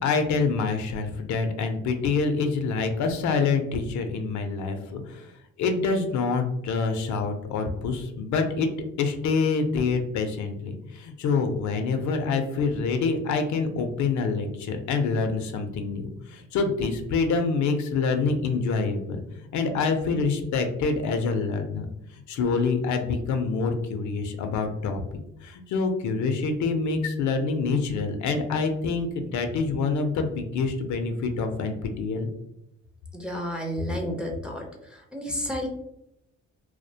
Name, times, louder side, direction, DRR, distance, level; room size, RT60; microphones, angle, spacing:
voice 1, 0.0-5.3 5.6-8.7 9.0-19.2 19.5-21.9 22.1-25.0 25.4-32.3, left 4 dB, 70° left, 6 dB, 0.5 m, -26 dB
voice 2, 33.1-35.7, equal, 5° right, 1 dB, 0.5 m, -32 dB
2.3 x 2.1 x 2.6 m, 0.81 s
cardioid pair, 90°, 30 cm